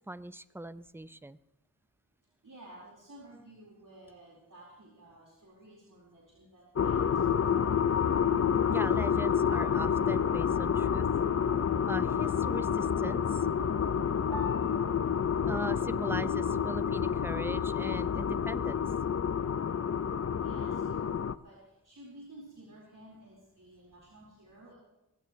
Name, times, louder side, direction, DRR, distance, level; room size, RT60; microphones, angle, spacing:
voice 1, 0.1-1.4 8.7-11.1 11.9-13.5 15.5-18.8, right 1 dB, 5° right, 14 dB, 0.6 m, -40 dB
voice 2, 2.4-7.0 20.4-24.8, right 1 dB, 65° right, -5 dB, 4.3 m, -53 dB
sound 1, 6.8-21.3, left 7 dB, 45° left, 0.5 m, -29 dB
Piano, 21.6-23.9, left 4 dB, 10° left, 4.6 m, -49 dB
22.0 x 16.0 x 3.2 m, 0.93 s
wide cardioid pair, 50°, 35 cm